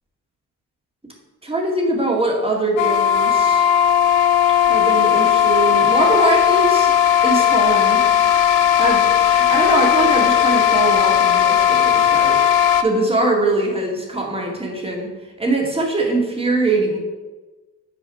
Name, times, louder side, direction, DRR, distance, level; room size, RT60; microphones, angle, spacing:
voice 1, 1.4-3.7 4.6-7.0 7.2-8.0 8.8-12.4 12.8-15.1 15.4-17.0, right 2 dB, 15° right, 0 dB, 2.2 m, -22 dB
sound 1, 2.8-12.8, left 9 dB, 85° left, 0.5 m, -16 dB
6.0 x 4.8 x 5.6 m, 1.2 s
hypercardioid pair, 45°, 40 cm